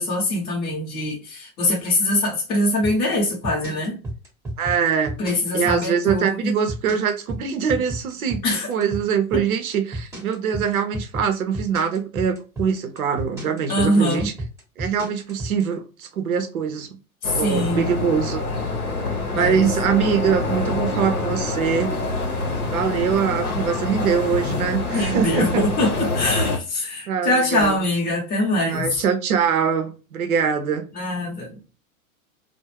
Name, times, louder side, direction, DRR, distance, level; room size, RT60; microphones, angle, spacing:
voice 1, 0.0-4.0 5.2-6.6 8.4-8.7 9.3-9.4 13.7-14.3 17.2-17.9 19.3-19.7 24.9-28.8 30.9-31.5, left 1 dB, 25° left, 0.7 m, -23 dB
sound 1, 2.8-15.6, right 1 dB, 5° right, 0.8 m, -31 dB
voice 2, 4.6-5.2 5.5-8.4 8.7-14.3 14.8-17.0 17.3-18.7 19.3-21.9 22.7-25.7 27.1-27.8 28.7-30.9, right 7 dB, 75° right, 0.6 m, -23 dB
sound 2, 17.2-26.6, left 2 dB, 90° left, 0.7 m, -26 dB
sound 3, 24.4-24.8 25.9-26.4 27.4-27.8 28.7-29.0, left 5 dB, 50° left, 1.0 m, -35 dB
2.3 x 2.0 x 3.0 m
figure-of-eight pair, 95°, 43 cm